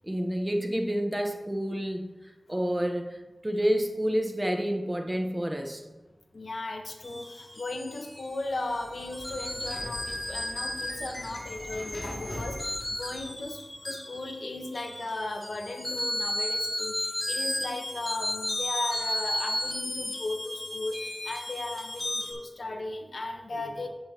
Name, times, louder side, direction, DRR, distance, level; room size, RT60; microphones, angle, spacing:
voice 1, 0.0-2.1 2.5-5.9, equal, 15° right, 4 dB, 1.0 m, -29 dB
voice 2, 6.3-13.6 13.8-23.9, left 2 dB, 75° left, 3 dB, 1.1 m, -36 dB
sound 1, 7.0-22.3, left 1 dB, 35° left, 2.0 m, -34 dB
Sliding door, 8.5-13.7, left 1 dB, 50° left, 2.5 m, -42 dB
10.0 x 7.9 x 2.9 m, 1.1 s
wide cardioid pair, 80°, 0 cm